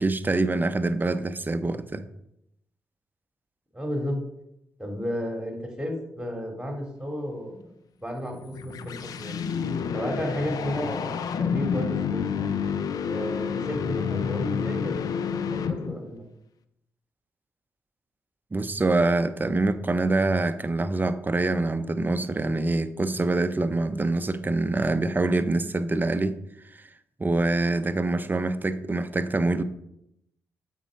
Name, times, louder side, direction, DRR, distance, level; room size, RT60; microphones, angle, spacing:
voice 1, 0.0-2.1 18.5-26.4 26.7-26.9 27.2-29.6, right 2 dB, 30° right, 11 dB, 0.7 m, -25 dB
voice 2, 3.7-4.2 4.8-7.7 8.0-9.4 9.9-12.5 13.0-16.2, equal, 10° right, 2 dB, 2.9 m, -33 dB
sound 1, 8.3-16.1, left 7 dB, 70° left, 0.5 m, -29 dB
7.5 x 4.6 x 5.2 m, 0.80 s
supercardioid pair, 45°, 7 cm